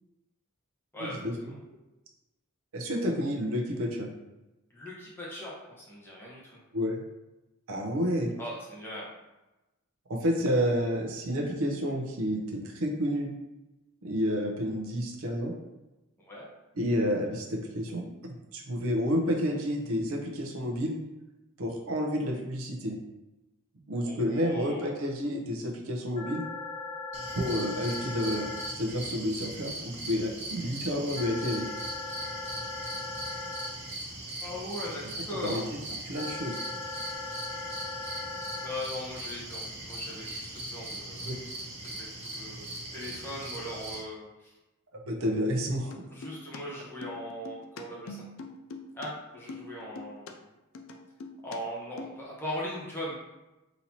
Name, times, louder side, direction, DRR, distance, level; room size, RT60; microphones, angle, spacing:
voice 1, 1.0-1.3 2.7-4.1 6.7-7.0 7.7-8.3 10.1-13.3 14.0-15.5 16.8-21.0 21.6-23.0 23.9-26.4 27.3-28.5 28.8-31.7 35.4-35.6 36.1-36.6 41.2-41.4 45.1-45.9, equal, 70° right, 1 dB, 0.6 m, -30 dB
voice 2, 4.7-6.6 8.4-9.1 16.3-16.5 24.0-25.0 34.4-35.7 38.6-39.6 39.9-41.3 42.0-42.6 42.9-44.5 46.1-48.2 48.9-50.5 51.4-53.1, left 1 dB, 10° left, -6 dB, 0.9 m, -39 dB
sound 1, 26.2-28.7 31.2-33.7 36.2-38.7, left 4 dB, 35° left, 0.7 m, -38 dB
sound 2, 27.1-44.0, right 1 dB, 30° right, 0.7 m, -40 dB
sound 3, 45.9-46.6 46.8-49.1 49.3-50.3 50.7-51.6 51.8-52.2, left 3 dB, 60° left, 0.4 m, -43 dB
4.0 x 2.8 x 2.8 m, 1.0 s
head